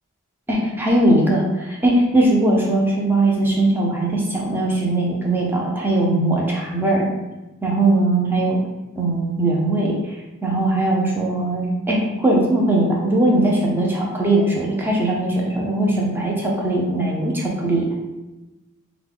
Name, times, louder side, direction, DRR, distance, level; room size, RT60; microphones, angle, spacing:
voice 1, 0.5-7.1 7.6-8.6 9.0-17.9, right 2 dB, 10° right, -3 dB, 0.7 m, -20 dB
5.5 x 2.3 x 3.7 m, 1.1 s
head